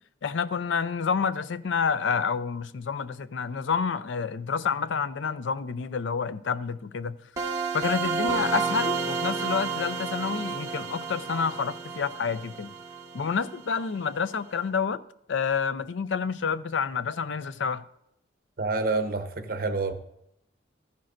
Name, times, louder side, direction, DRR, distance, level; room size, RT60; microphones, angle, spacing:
voice 1, 0.2-7.2 7.7-12.7 13.1-15.0 15.3-17.8, left 6 dB, 85° left, 0.5 m, -28 dB
sound 1, 7.4-14.0, right 5 dB, 15° right, 1.5 m, -31 dB
voice 2, 18.6-19.9, right 3 dB, 50° right, 1.0 m, -28 dB
14.0 x 10.5 x 2.6 m
head